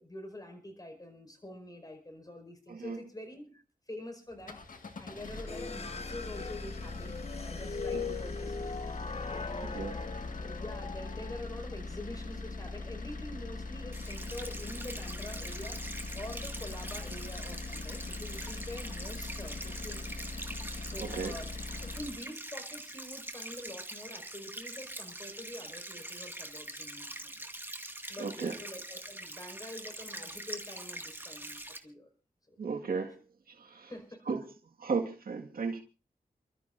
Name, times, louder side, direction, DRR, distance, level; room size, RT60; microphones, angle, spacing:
voice 1, 0.0-4.6 5.0-8.7 9.3-15.8 16.1-20.2 20.8-21.5 21.8-27.5 28.1-32.1 32.5-32.9 33.9-34.2, left 1 dB, 25° left, 5.2 m, -46 dB
sound 1, 4.3-22.2, left 3 dB, 65° left, 1.8 m, -41 dB
sound 2, 5.5-11.4, left 5 dB, 45° left, 0.8 m, -40 dB
sound 3, 13.9-31.8, right 1 dB, 15° right, 2.0 m, -43 dB
voice 2, 21.0-21.3 28.2-28.6 32.6-33.2 33.6-33.9 34.3-34.4 34.8-35.8, right 5 dB, 85° right, 1.8 m, -34 dB
29.5 x 13.0 x 2.6 m
wide cardioid pair, 70°, 15 cm